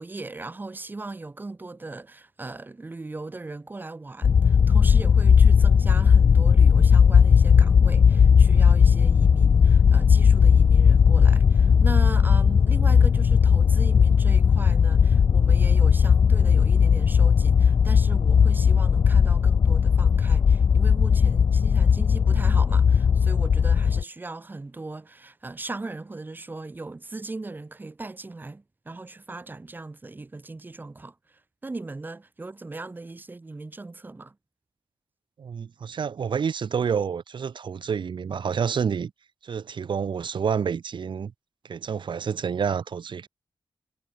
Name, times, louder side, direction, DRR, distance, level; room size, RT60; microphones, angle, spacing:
voice 1, 0.0-34.3, right 3 dB, 25° right, 3.3 m, -38 dB
sound 1, 4.2-24.0, left 6 dB, 55° left, 0.6 m, -17 dB
sound 2, 7.3-13.2, left 1 dB, 10° left, 5.0 m, -41 dB
voice 2, 35.4-39.1 39.4-41.3 41.6-43.3, right 6 dB, 70° right, 2.3 m, -28 dB
wide cardioid pair, 180°, 8 cm